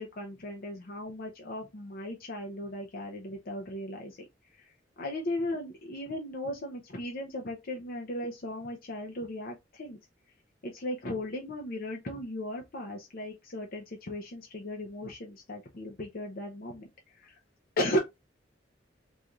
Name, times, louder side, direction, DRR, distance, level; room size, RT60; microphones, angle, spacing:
voice 1, 0.0-4.2 4.6-4.7 5.0-10.0 10.6-16.9 17.2-17.3 17.8-18.0, left 1 dB, 55° left, 0.7 m, -36 dB
3.9 x 2.5 x 3.0 m
head